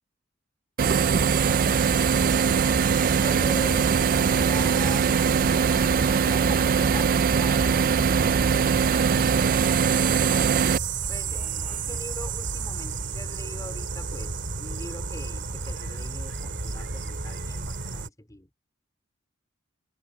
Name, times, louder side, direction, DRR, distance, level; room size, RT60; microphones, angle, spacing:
sound 1, 0.8-10.8, right 6 dB, 45° right, 0.4 m, -22 dB
sound 2, 0.8-18.1, right 5 dB, 60° right, 2.2 m, -32 dB
voice 1, 1.4-3.5 11.2-12.0, left 2 dB, 40° left, 4.3 m, -47 dB
voice 2, 3.2-5.3 6.1-9.3 11.1-18.5, left 1 dB, 20° left, 3.7 m, -41 dB
head